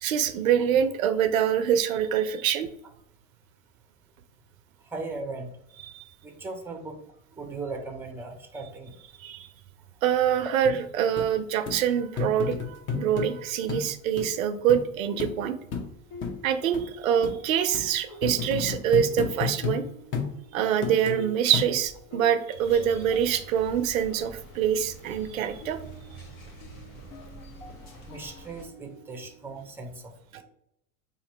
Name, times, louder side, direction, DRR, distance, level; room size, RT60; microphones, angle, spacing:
voice 1, 0.0-2.7 5.9-6.0 9.2-9.5 10.0-15.6 16.4-19.8 20.5-25.8 30.3-30.4, right 9 dB, 90° right, 11 dB, 0.5 m, -25 dB
voice 2, 4.9-5.5 6.2-7.0 7.3-9.0 18.1-18.2 28.1-30.4, right 3 dB, 5° right, 4 dB, 0.6 m, -38 dB
sound 1, 10.7-10.8 11.2-11.3 11.7-11.8 12.2-13.3 13.7-13.9 14.2-14.3 14.7-14.8 15.2-15.3 15.7-15.9 16.2-16.3 16.7-16.8 17.2-17.4 17.7-17.9 18.2-19.8 20.1-20.3 20.8-21.2 21.5-22.0 22.5-22.6, left 6 dB, 30° left, 0.8 m, -31 dB
sound 2, 14.9-29.6, left 1 dB, 60° left, 0.9 m, -49 dB
sound 3, 22.6-28.7, right 1 dB, 80° left, 1.2 m, -46 dB
2.9 x 2.6 x 4.2 m, 0.76 s
hypercardioid pair, 95°, 40 cm